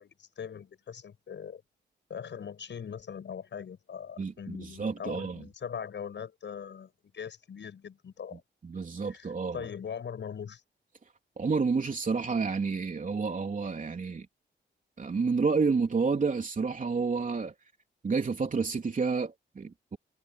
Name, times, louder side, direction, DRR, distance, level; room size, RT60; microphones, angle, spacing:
voice 1, 0.0-1.6 2.1-8.4 9.1-10.6, left 7 dB, 70° left, 7.0 m, -41 dB
voice 2, 4.2-5.4 8.6-9.6 11.4-14.3 15.0-17.5 18.0-20.0, right 4 dB, 45° right, 3.4 m, -30 dB
cardioid pair, 100°, 19 cm